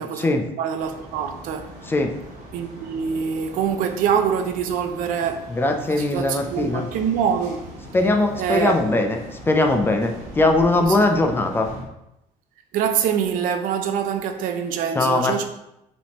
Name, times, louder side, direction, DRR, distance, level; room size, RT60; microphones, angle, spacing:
voice 1, 0.0-0.4 1.8-2.1 5.5-6.9 7.9-11.7 15.0-15.5, left 2 dB, 15° left, 0.4 m, -20 dB
voice 2, 0.6-1.7 2.5-5.5 5.9-7.7 8.4-9.0 10.8-11.0 12.7-15.5, right 7 dB, 80° right, 0.5 m, -25 dB
sound 1, 0.8-11.8, right 1 dB, 60° right, 1.2 m, -40 dB
5.1 x 3.5 x 2.9 m
cardioid pair, 160°, 14 cm